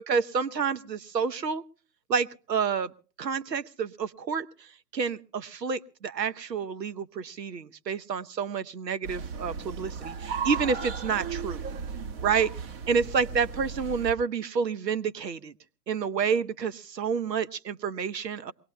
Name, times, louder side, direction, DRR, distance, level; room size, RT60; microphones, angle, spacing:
voice 1, 0.0-1.6 2.1-2.9 3.2-4.5 4.9-11.6 12.2-12.5 12.9-15.5 15.9-18.5, right 6 dB, 80° right, 15 dB, 1.1 m, -29 dB
sound 1, 9.0-14.1, right 6 dB, 35° right, 1.8 m, -35 dB
23.5 x 19.0 x 2.2 m, 0.39 s
hypercardioid pair, 135°, 50 cm